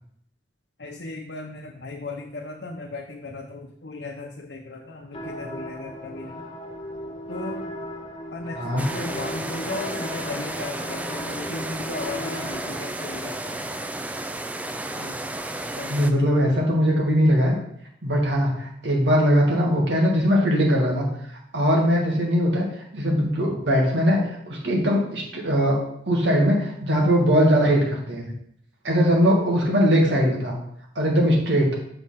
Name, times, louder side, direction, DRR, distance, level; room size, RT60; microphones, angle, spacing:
voice 1, 0.8-6.5 7.3-7.7 8.3-13.8 14.9-15.2 15.7-16.4, left 3 dB, 65° left, 1 dB, 0.8 m, -36 dB
sound 1, 5.1-12.8, left 1 dB, 25° left, 1.4 m, -36 dB
sound 2, 8.8-16.1, right 1 dB, 10° right, 0.4 m, -32 dB
voice 2, 15.9-17.6 18.0-21.1 21.5-22.7 22.9-28.3 28.8-30.6 31.0-31.8, equal, 80° right, -2 dB, 2.1 m, -20 dB
6.6 x 4.4 x 5.8 m, 0.73 s
head